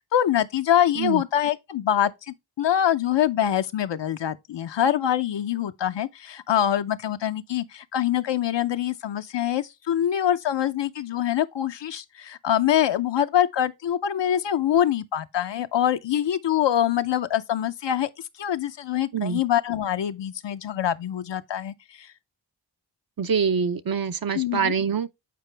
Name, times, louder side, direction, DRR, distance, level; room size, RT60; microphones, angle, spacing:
voice 1, 0.1-18.1 18.4-22.1 24.3-24.7, left 10 dB, 80° left, 0.7 m, -24 dB
voice 2, 23.2-25.1, right 6 dB, 55° right, 0.6 m, -25 dB
8.5 x 4.5 x 3.3 m
cardioid pair, 55°, 42 cm